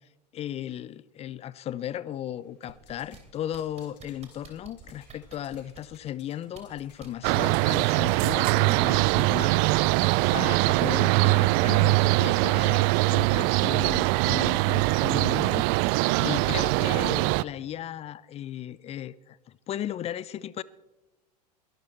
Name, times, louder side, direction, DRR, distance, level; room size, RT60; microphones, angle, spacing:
voice 1, 0.3-9.9 10.3-15.8 16.2-19.4 19.7-20.6, left 11 dB, 30° left, 0.5 m, -36 dB
sound 1, 2.3-16.8, left 4 dB, 80° left, 4.6 m, -60 dB
sound 2, 2.7-3.2 3.5-6.0 6.5-7.1 7.4-9.8 10.9-11.0, right 7 dB, 30° right, 3.2 m, -49 dB
sound 3, 7.2-17.4, right 22 dB, 50° right, 0.4 m, -22 dB
22.0 x 12.0 x 4.5 m
hypercardioid pair, 85°, 21 cm